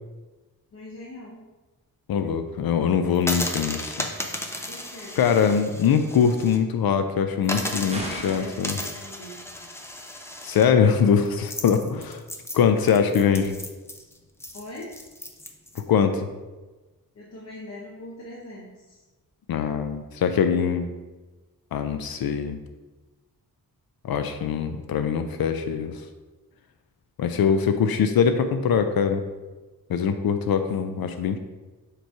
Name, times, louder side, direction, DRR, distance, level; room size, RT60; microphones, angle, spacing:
voice 1, 0.7-1.4 4.7-5.2 7.4-9.7 14.5-14.9 17.2-19.0, left 1 dB, 45° left, -5 dB, 0.8 m, -41 dB
voice 2, 2.1-4.0 5.2-8.8 10.4-12.2 12.5-13.5 15.8-16.3 19.5-20.9 21.7-22.6 24.0-25.9 27.2-29.2 29.9-31.4, left 7 dB, 75° left, 8 dB, 0.5 m, -22 dB
sound 1, 3.1-6.6 6.9-7.0 7.4-15.8, left 1 dB, 5° left, 0.4 m, -35 dB
sound 2, 7.9-8.6, right 1 dB, 15° right, 1.0 m, -34 dB
6.6 x 3.1 x 4.6 m, 1.2 s
wide cardioid pair, 165°, 36 cm